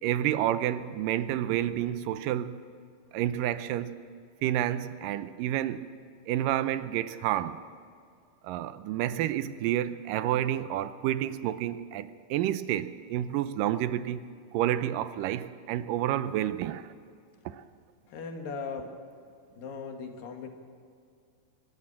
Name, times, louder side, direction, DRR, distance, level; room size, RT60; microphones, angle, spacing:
voice 1, 0.0-2.6 3.1-3.9 4.4-5.9 6.3-7.6 8.4-16.9 17.5-17.6, right 12 dB, 80° right, 2.3 m, -29 dB
voice 2, 18.1-18.9 19.6-20.5, left 5 dB, 80° left, 3.6 m, -38 dB
23.5 x 13.0 x 8.8 m
omnidirectional pair, 3.9 m